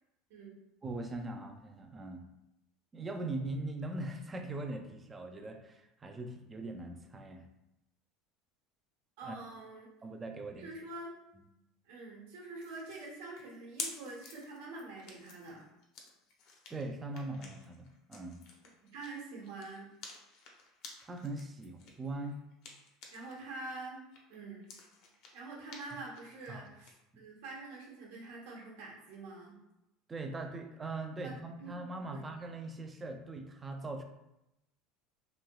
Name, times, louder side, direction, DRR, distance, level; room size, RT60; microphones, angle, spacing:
voice 1, 0.8-2.2 2.9-7.4 9.2-9.4 10.0-10.7 16.7-18.4 21.0-22.4 26.5-26.7 30.1-34.0, right 2 dB, 15° right, 5 dB, 0.3 m, -41 dB
voice 2, 9.2-9.9 10.6-11.1 11.8-15.6 18.9-19.9 23.1-24.0 24.3-24.7 25.3-29.6 31.2-31.3 31.6-32.2, right 3 dB, 85° right, -3 dB, 1.1 m, -46 dB
sound 1, 12.6-23.4 23.7-26.9, left 4 dB, 55° left, 0.6 m, -50 dB
3.0 x 2.9 x 2.3 m, 0.88 s
cardioid pair, 155°, 0 cm